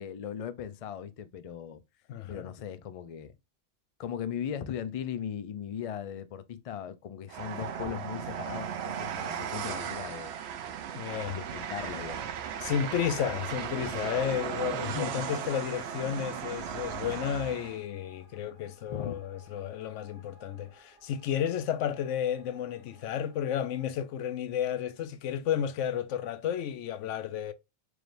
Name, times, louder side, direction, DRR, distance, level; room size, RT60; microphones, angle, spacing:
voice 1, 0.0-1.8 2.3-3.3 4.0-10.3 11.3-12.3 14.7-15.3 18.9-19.1, left 9 dB, 70° left, 0.3 m, -38 dB
voice 2, 2.1-2.5 11.0-11.4 12.6-27.5, left 9 dB, 90° left, 0.9 m, -32 dB
Train, 7.3-17.8, right 8 dB, 70° right, 0.8 m, -36 dB
sound 1, 12.7-23.9, right 1 dB, 50° right, 1.4 m, -60 dB
4.7 x 3.2 x 2.5 m
omnidirectional pair, 1.2 m